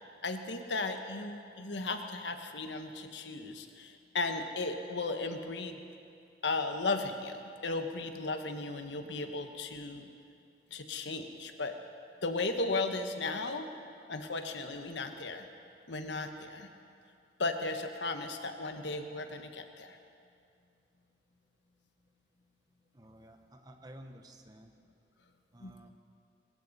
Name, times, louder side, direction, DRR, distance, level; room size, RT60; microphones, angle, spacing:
voice 1, 0.2-5.8 6.4-10.1 10.7-11.8 12.2-13.7 14.1-15.5 15.9-16.7 17.4-20.0 25.6-25.9, left 3 dB, 90° left, 6 dB, 1.2 m, -35 dB
voice 2, 22.9-24.7 25.5-25.9, right 1 dB, 20° right, 5 dB, 1.0 m, -52 dB
21.5 x 16.0 x 4.1 m, 2.4 s
head